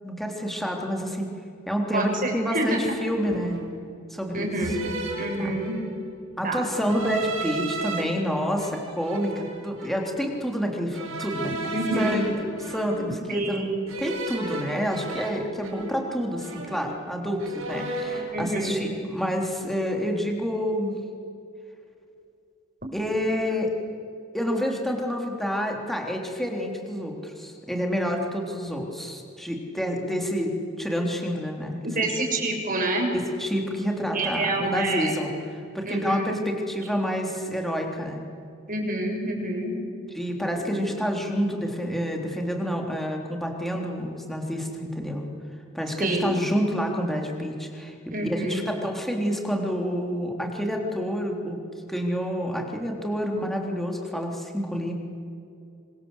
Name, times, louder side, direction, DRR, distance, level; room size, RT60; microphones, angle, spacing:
voice 1, 0.0-1.3 1.7-3.6 4.1-4.5 5.4-5.5 6.4-12.4 12.7-13.7 14.0-21.0 22.9-23.7 24.3-31.9 33.4-35.3 35.7-38.3 40.1-45.2 45.7-51.6 51.9-54.9, equal, ahead, 1 dB, 3.7 m, -28 dB
voice 2, 1.9-2.8 4.3-5.8 6.4-6.9 11.7-12.2 13.3-13.8 18.3-18.9 22.8-22.9 31.8-33.1 34.1-35.2 35.8-36.4 38.7-39.8 40.6-40.8 46.0-46.4 48.1-48.6, right 1 dB, 40° right, 1 dB, 6.8 m, -28 dB
sound 1, 2.2-2.4 3.3-3.8 4.6-6.0 6.8-8.0 8.6-10.1 10.9-13.3 13.9-16.1 16.4-17.1 17.4-18.3, right 2 dB, 80° right, 6.9 m, -34 dB
28.0 x 25.0 x 8.3 m, 2.6 s
head